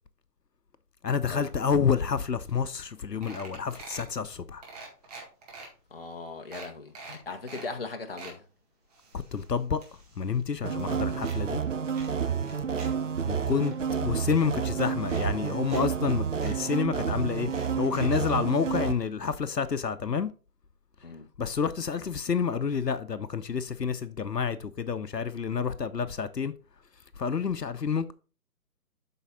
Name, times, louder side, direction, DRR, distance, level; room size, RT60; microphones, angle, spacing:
voice 1, 1.0-4.6 9.1-11.6 13.3-13.7 14.0-17.5 17.8-20.3 21.4-26.5 27.2-28.1, left 6 dB, 80° left, 0.9 m, -29 dB
sound 1, 2.5-2.6 2.8-3.0 3.2-4.1 4.6-5.7 6.1-6.2 6.5-7.7 8.0-8.4 8.9-10.4 10.7-11.4 11.9-12.9 13.2-13.7 14.5-14.6 15.0-15.8 16.1-16.2 16.4-16.6 17.4-18.3 19.2-19.3 19.6-19.7, right 3 dB, 25° right, 1.9 m, -46 dB
voice 2, 5.9-8.4 21.0-21.3, left 3 dB, 35° left, 0.9 m, -39 dB
sound 2, 10.6-18.9, right 7 dB, 50° right, 0.6 m, -30 dB
8.1 x 5.9 x 3.9 m
figure-of-eight pair, 150°, 48 cm